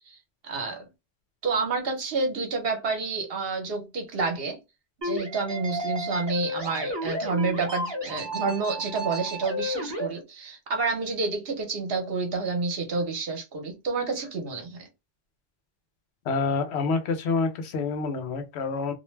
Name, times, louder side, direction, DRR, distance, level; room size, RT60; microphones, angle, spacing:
voice 1, 0.4-0.8 1.4-4.6 5.0-14.9, right 4 dB, 65° right, 1.0 m, -29 dB
sound 1, 5.0-10.1, equal, 25° right, 0.8 m, -32 dB
voice 2, 16.3-18.9, left 4 dB, 85° left, 0.9 m, -27 dB
2.5 x 2.1 x 3.1 m
omnidirectional pair, 1.1 m